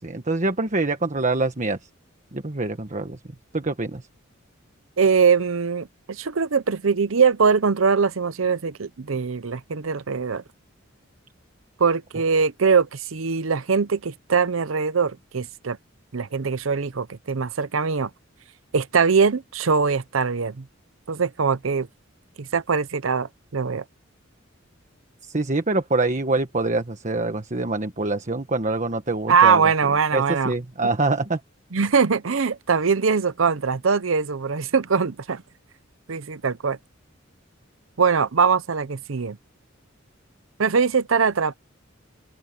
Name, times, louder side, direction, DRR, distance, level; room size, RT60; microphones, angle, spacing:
voice 1, 0.0-1.8 2.3-3.2 3.5-4.0 25.2-29.7 30.1-31.4, right 2 dB, 35° right, 1.4 m, -25 dB
voice 2, 5.0-10.4 11.8-15.8 16.1-18.1 18.7-20.6 21.1-21.9 22.4-23.8 29.3-30.5 31.7-35.4 36.1-36.8 38.0-39.4 40.6-41.5, right 5 dB, 80° right, 0.7 m, -22 dB
open air
head